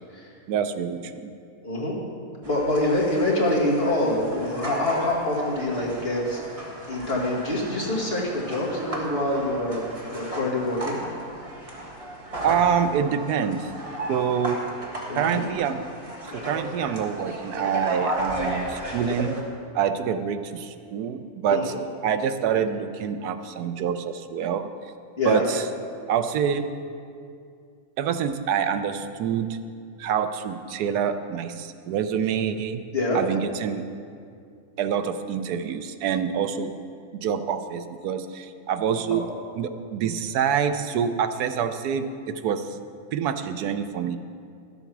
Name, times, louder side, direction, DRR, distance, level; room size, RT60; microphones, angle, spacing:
voice 1, 0.5-1.3 12.4-13.7 14.1-14.6 15.1-15.8 16.3-19.3 19.7-21.7 22.0-24.7 25.2-25.7 26.1-26.7 28.0-29.6 30.0-32.8 33.1-33.8 34.8-36.7 37.1-39.3 39.6-42.8 43.1-44.2, right 7 dB, 80° right, 10 dB, 1.1 m, -26 dB
voice 2, 1.6-1.9 2.4-6.4 6.9-11.1 15.1-15.4 21.5-21.6 25.2-25.4 32.9-33.2 39.1-39.3, left 1 dB, 40° left, -4 dB, 2.1 m, -25 dB
sound 1, 2.4-19.4, right 1 dB, 20° right, 1.5 m, -35 dB
12.0 x 8.0 x 6.0 m, 2.3 s
omnidirectional pair, 1.6 m